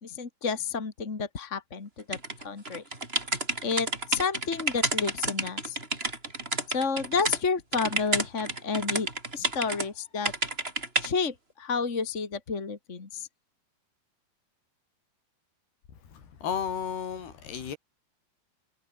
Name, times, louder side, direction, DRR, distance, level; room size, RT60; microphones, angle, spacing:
voice 1, 0.0-2.8 3.6-5.8 6.7-9.1 9.3-10.3 11.0-13.3, left 5 dB, 30° left, 1.4 m, -30 dB
sound 1, 2.1-7.4 7.7-9.9 10.2-11.1, right 2 dB, 15° right, 3.9 m, -30 dB
voice 2, 16.1-17.8, left 7 dB, 85° left, 5.9 m, -33 dB
omnidirectional pair, 4.5 m